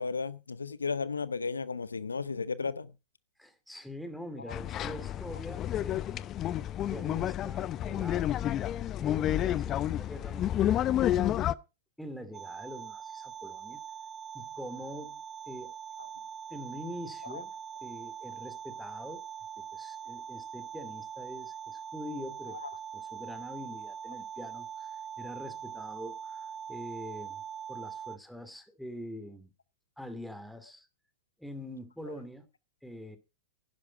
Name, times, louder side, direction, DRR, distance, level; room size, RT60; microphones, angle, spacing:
voice 1, 0.0-2.9 4.5-4.6 17.2-17.4 22.6-22.7, left 4 dB, 85° left, 0.7 m, -34 dB
voice 2, 3.4-6.2 6.9-8.7 9.0-10.9 12.0-13.8 14.3-15.2 15.5-15.7 16.5-17.5 17.8-19.2 19.6-27.4 27.7-29.5 30.0-30.9 31.4-32.5 32.8-33.2, equal, ahead, 2.4 m, -44 dB
sound 1, 4.5-11.5, left 12 dB, 35° left, 0.6 m, -30 dB
sound 2, 12.3-28.2, right 8 dB, 25° right, 0.7 m, -42 dB
11.0 x 10.5 x 5.2 m
hypercardioid pair, 100°, 0 cm